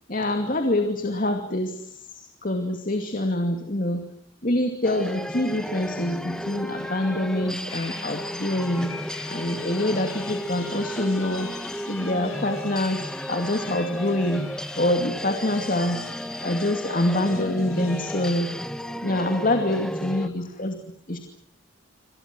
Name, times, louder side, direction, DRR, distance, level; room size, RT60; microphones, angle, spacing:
voice 1, 0.1-4.0 4.4-8.9 9.3-11.5 11.9-14.4 14.8-16.0 16.4-18.5 19.0-20.8 21.1-21.2, left 1 dB, 40° left, 5 dB, 2.5 m, -25 dB
sound 1, 4.8-20.3, left 1 dB, 5° left, 1.3 m, -34 dB
sound 2, 7.7-18.4, left 8 dB, 85° left, 5.1 m, -45 dB
27.5 x 27.0 x 6.2 m, 0.67 s
head